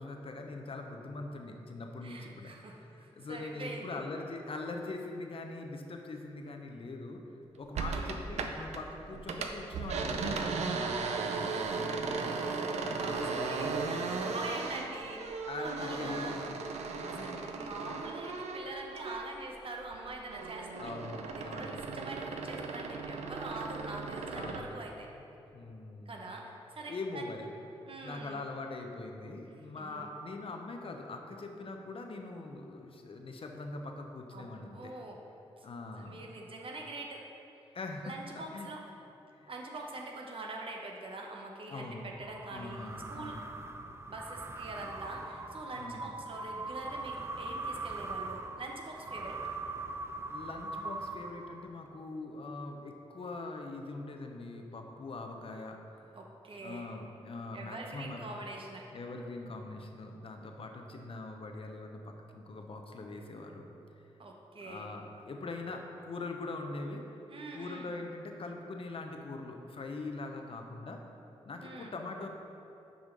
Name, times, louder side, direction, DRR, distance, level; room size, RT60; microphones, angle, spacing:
voice 1, 0.0-7.2 7.6-12.3 12.8-14.0 15.5-16.4 17.0-17.4 20.8-21.8 24.3-24.8 25.5-26.3 26.9-27.5 28.0-34.9 35.6-36.3 37.7-38.7 39.4-39.5 41.7-42.1 42.5-43.5 45.7-46.1 50.3-56.1 56.6-58.3 58.9-63.7 64.6-67.0 67.5-71.0 71.4-72.3, left 3 dB, 55° left, 3 dB, 0.8 m, -42 dB
voice 2, 2.0-4.0 7.8-8.2 12.7-16.3 17.1-20.9 21.3-25.1 26.1-27.3 27.9-28.5 29.8-30.1 34.3-35.2 35.6-35.7 36.0-37.3 38.0-38.8 39.5-43.4 44.1-49.5 56.1-56.9 57.5-58.8 64.2-64.9 67.3-67.9 71.6-71.9, right 2 dB, 55° right, 0 dB, 0.8 m, -44 dB
sound 1, 7.7-8.8 9.1-19.5 19.8-24.7, right 4 dB, 80° right, 0.5 m, -36 dB
sound 2, 42.1-51.9, right 3 dB, 25° right, 0.5 m, -41 dB
6.2 x 5.0 x 5.3 m, 2.9 s
supercardioid pair, 45°, 11 cm